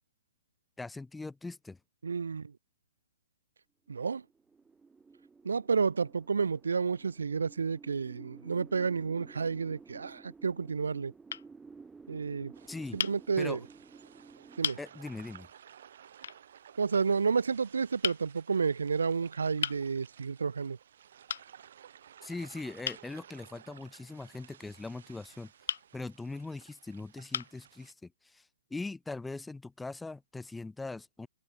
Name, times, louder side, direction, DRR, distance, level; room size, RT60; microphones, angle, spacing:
voice 1, 0.8-1.8 12.7-13.0 13.4-13.6 14.8-15.5 22.2-25.5 25.9-31.3, left 3 dB, 5° left, 0.5 m, -41 dB
voice 2, 2.0-2.5 3.9-4.2 5.4-11.1 12.1-12.5 12.9-13.6 14.6-14.8 16.8-20.8, right 5 dB, 80° right, 0.3 m, -30 dB
sound 1, 4.3-14.7, right 4 dB, 10° right, 1.5 m, -54 dB
sound 2, 9.5-10.1 10.9-11.0 11.3-11.5 13.0-13.2 14.0-14.1 14.6-14.8 16.2-16.4 18.0-18.2 19.6-19.8 21.3-21.5 22.8-23.1 25.7-25.9 26.7-26.8 27.3-27.6, left 8 dB, 65° left, 0.6 m, -35 dB
sound 3, 12.5-27.9, right 9 dB, 60° right, 7.8 m, -56 dB
hypercardioid pair, 125°, 0 cm